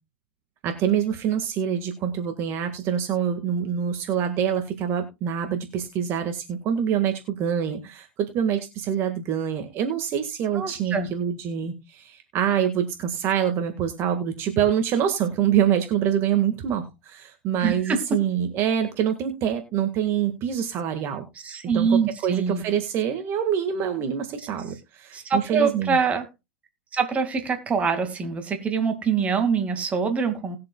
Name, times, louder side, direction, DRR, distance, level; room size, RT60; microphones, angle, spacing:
voice 1, 0.6-21.3 21.7-26.0, right 9 dB, 40° right, 1.8 m, -25 dB
voice 2, 10.5-11.1 17.6-18.2 21.3-22.6 25.1-26.3 26.9-30.6, right 5 dB, 20° right, 2.2 m, -24 dB
19.5 x 7.6 x 2.3 m
hypercardioid pair, 115°, 6 cm